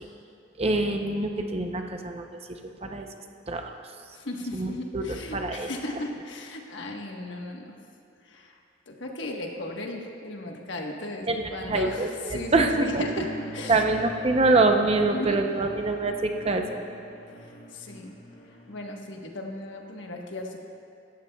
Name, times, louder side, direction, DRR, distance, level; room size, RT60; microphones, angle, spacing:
voice 1, 0.6-2.3 2.8-3.1 3.5-3.7 4.5-5.0 5.3-5.7 11.3-11.4 11.7-13.0 13.7-16.8, right 3 dB, 35° right, 4 dB, 0.7 m, -25 dB
voice 2, 4.1-7.7 8.2-8.6 8.9-13.8 15.1-15.4 17.4-18.1 18.7-20.6, left 2 dB, 80° left, 1 dB, 1.3 m, -36 dB
sound 1, 12.2-18.8, equal, 65° left, 2.2 m, -42 dB
16.5 x 13.5 x 2.3 m, 2.4 s
head